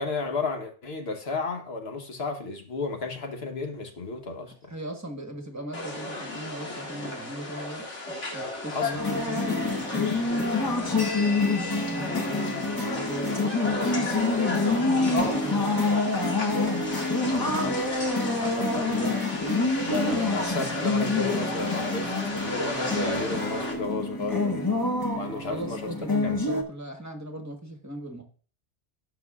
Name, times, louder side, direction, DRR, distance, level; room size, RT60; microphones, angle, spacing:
voice 1, 0.0-4.5 8.7-9.0 17.3-17.7 18.4-19.3 19.9-22.1 22.4-24.7 25.2-25.8 26.2-26.4, left 3 dB, 60° left, 1.4 m, -33 dB
voice 2, 4.7-8.0 8.3-11.1 11.9-15.9 17.5-17.8 25.3-28.2, right 1 dB, 15° right, 1.3 m, -39 dB
sound 1, 5.7-23.7, left 2 dB, 80° left, 2.4 m, -33 dB
sound 2, 9.0-26.6, left 3 dB, 20° left, 1.0 m, -27 dB
15.0 x 6.0 x 2.4 m
omnidirectional pair, 1.2 m